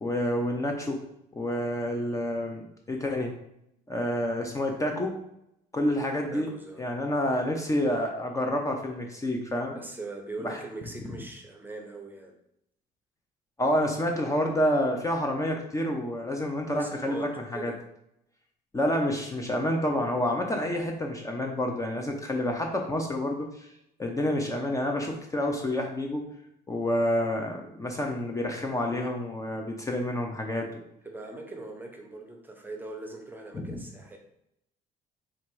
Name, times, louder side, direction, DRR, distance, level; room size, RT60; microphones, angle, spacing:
voice 1, 0.0-1.0 1.3-3.3 3.9-5.2 5.7-6.5 6.8-9.7 10.4-10.6 13.6-17.7 18.7-23.7 24.0-26.3 26.7-30.8 33.5-33.8, left 1 dB, 20° left, 2 dB, 0.7 m, -28 dB
voice 2, 6.3-6.8 9.7-12.3 16.6-17.8 31.0-34.2, right 2 dB, 10° right, 2 dB, 0.8 m, -41 dB
4.4 x 2.6 x 4.6 m, 0.78 s
cardioid pair, 110°, 17 cm